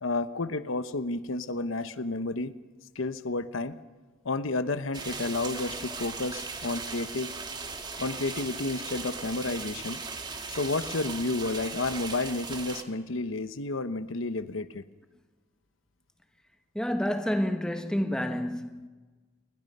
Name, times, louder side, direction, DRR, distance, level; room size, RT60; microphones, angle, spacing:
voice 1, 0.0-2.5 2.9-3.8 4.2-7.3 8.0-10.0 10.5-14.8, left 2 dB, 85° left, 1.0 m, -31 dB
sound 1, 4.9-12.8, right 4 dB, 20° right, 1.5 m, -38 dB
voice 2, 16.7-18.9, equal, 5° left, 1.2 m, -29 dB
28.5 x 20.5 x 5.5 m
head